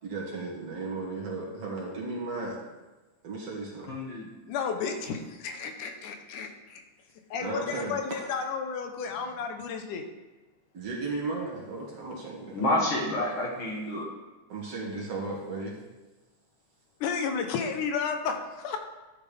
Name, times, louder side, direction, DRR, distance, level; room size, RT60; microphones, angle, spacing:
voice 1, 0.0-2.6 3.2-3.9 7.4-8.5 10.7-12.7 14.5-15.8, right 3 dB, 55° right, -3 dB, 3.0 m, -35 dB
voice 2, 3.9-4.3 12.5-14.1, left 1 dB, 50° left, -2 dB, 1.9 m, -28 dB
voice 3, 4.5-6.8 7.3-10.1 17.0-18.8, left 6 dB, 85° left, 5 dB, 2.5 m, -32 dB
12.5 x 9.5 x 3.5 m, 1.2 s
omnidirectional pair, 3.5 m